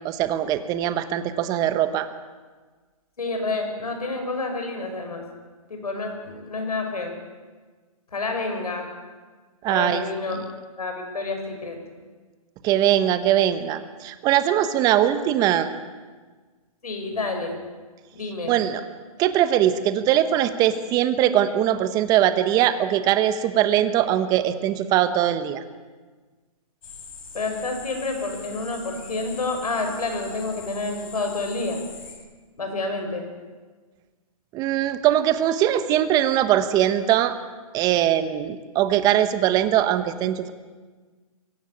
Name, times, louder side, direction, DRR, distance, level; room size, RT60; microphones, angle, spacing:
voice 1, 0.0-2.1 9.6-10.0 12.6-15.7 18.5-18.8 19.2-25.6 34.5-37.3 37.7-40.5, right 11 dB, 20° right, 11 dB, 1.1 m, -21 dB
voice 2, 3.2-5.2 5.7-7.1 8.1-8.9 9.7-10.4 10.8-11.8 16.8-17.6 18.1-18.5 27.3-31.8 32.6-33.3, left 3 dB, 85° left, 4 dB, 6.7 m, -29 dB
sound 1, 26.8-32.2, left 5 dB, 65° left, 7.8 m, -42 dB
24.0 x 15.0 x 8.8 m, 1.4 s
hypercardioid pair, 145°, 19 cm